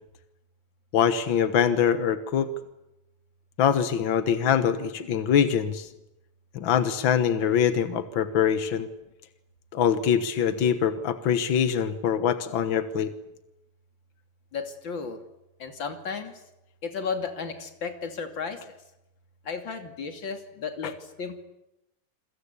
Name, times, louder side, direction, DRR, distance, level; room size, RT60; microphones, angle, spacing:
voice 1, 0.9-2.5 3.6-5.9 6.5-8.9 9.7-13.1, left 8 dB, 60° left, 11 dB, 1.2 m, -23 dB
voice 2, 14.5-15.2 15.6-16.3 16.8-18.7 19.4-21.5, left 5 dB, 35° left, 6 dB, 3.1 m, -34 dB
28.5 x 22.5 x 8.3 m, 0.91 s
omnidirectional pair, 3.8 m